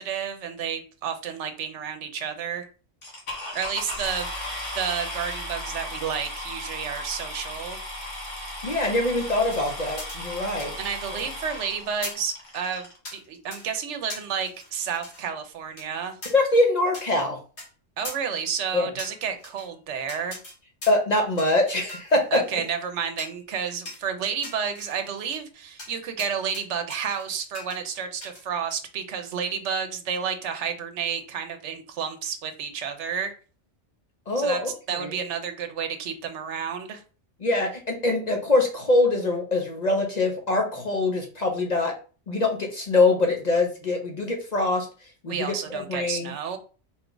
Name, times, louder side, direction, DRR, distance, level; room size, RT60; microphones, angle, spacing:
voice 1, 0.0-2.7 3.5-4.3 4.7-7.8 10.8-16.2 18.0-20.4 22.3-33.3 34.4-37.0 45.3-46.6, right 7 dB, 80° right, 6 dB, 1.0 m, -31 dB
sound 1, 3.0-13.0 13.7-13.8 14.3-14.4 14.6-15.0, left 1 dB, 85° left, 1.6 m, -36 dB
voice 2, 8.6-10.7 16.3-17.4 18.7-18.9 20.9-22.4 34.3-34.7 35.0-35.2 37.4-41.9 42.3-44.9 45.2-45.5 45.7-46.3, left 2 dB, 45° left, 2 dB, 0.7 m, -23 dB
sound 2, 9.5-11.2 11.5-11.7 12.0-12.3 13.1-13.2 13.5-13.7 14.1-15.3 15.8-15.9 16.2-16.3 16.9-17.1 17.6-17.7 18.0-18.2 19.0-19.7 20.1-20.6 20.8-21.1 21.4-21.6 21.9-22.7 23.2-23.4 23.9-24.0 24.4-25.4 25.8-25.9 26.2-26.6 26.9-27.2 27.5-27.8 28.2-28.4, left 1 dB, 65° left, 1.8 m, -40 dB
4.1 x 2.3 x 3.8 m, 0.37 s
omnidirectional pair, 1.2 m